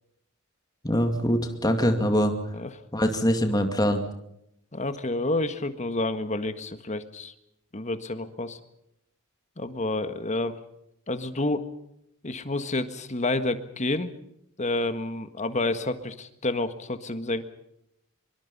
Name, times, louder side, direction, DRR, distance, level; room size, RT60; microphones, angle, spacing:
voice 1, 0.8-2.3 2.9-4.0, equal, 20° left, 5 dB, 2.3 m, -23 dB
voice 2, 4.7-7.3 7.7-8.6 9.6-10.6 11.1-11.7 12.2-14.1 14.6-17.4, left 2 dB, 35° left, 10 dB, 1.6 m, -29 dB
25.0 x 23.5 x 5.5 m, 0.79 s
head